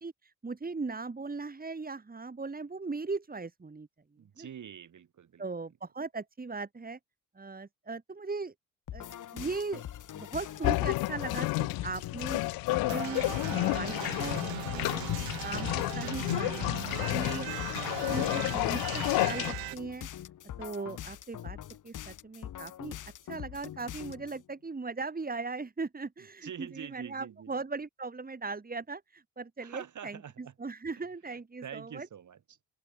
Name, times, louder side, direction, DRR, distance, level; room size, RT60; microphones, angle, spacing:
voice 1, 0.0-3.9 4.4-4.5 5.4-7.0 7.3-8.5 8.9-9.1 9.3-9.8 10.1-12.4 12.7-14.4 14.7-15.0 15.4-17.5 18.1-20.1 20.6-21.6 21.8-22.9 23.2-32.1, right 4 dB, 25° right, 3.5 m, -39 dB
voice 2, 4.2-5.4 18.0-18.5 26.4-27.5 29.6-30.5 31.3-32.4, right 8 dB, 55° right, 6.9 m, -45 dB
sound 1, 8.9-24.4, left 11 dB, 55° left, 1.8 m, -43 dB
sound 2, 10.6-19.5, left 21 dB, 75° left, 1.0 m, -31 dB
sound 3, 12.8-19.8, right 18 dB, 75° right, 2.5 m, -39 dB
open air
supercardioid pair, 60°, 36 cm